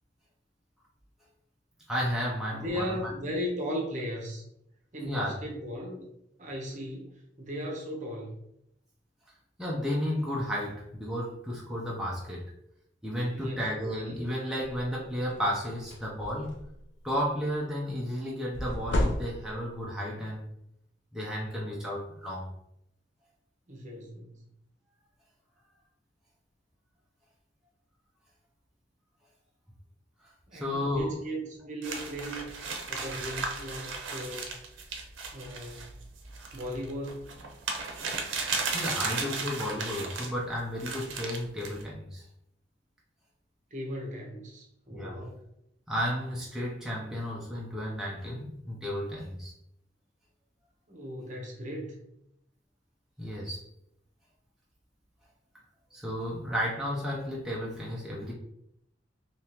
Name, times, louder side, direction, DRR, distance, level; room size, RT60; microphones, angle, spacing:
voice 1, 1.9-3.1 5.0-5.3 9.6-12.5 13.0-16.6 17.0-20.5 21.1-22.5 30.5-31.1 38.7-42.3 44.9-45.2 45.9-49.5 53.2-53.6 55.9-58.3, equal, 5° right, -5 dB, 0.6 m, -33 dB
voice 2, 2.5-4.4 4.9-6.0 6.4-8.4 13.3-13.6 23.7-24.4 30.5-32.5 32.8-34.5 35.3-36.0 36.5-37.3 43.7-45.4 50.9-52.0, equal, 40° right, 0 dB, 0.9 m, -37 dB
sound 1, 14.6-14.9 15.3-15.5 15.8-16.9 18.5-19.8, left 1 dB, 70° left, 0.5 m, -31 dB
sound 2, 31.8-40.3 40.8-41.8, right 4 dB, 90° right, 0.6 m, -35 dB
3.5 x 2.8 x 2.9 m, 0.78 s
head